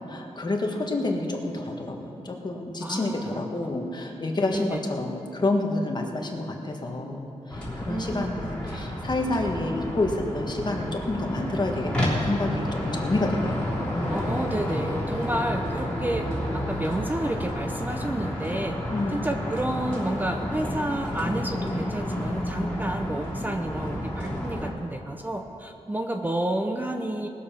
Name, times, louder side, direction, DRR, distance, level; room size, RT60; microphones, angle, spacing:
voice 1, 0.1-14.3 18.9-19.2, left 2 dB, 35° left, 1 dB, 1.5 m, -29 dB
voice 2, 2.8-3.4 4.5-4.8 7.9-8.5 14.1-18.8 19.1-27.3, right 1 dB, 15° right, 4 dB, 0.6 m, -30 dB
sound 1, 7.5-24.7, equal, 10° left, 3.3 m, -30 dB
19.0 x 7.1 x 5.7 m, 2.9 s
wide cardioid pair, 110°, 12 cm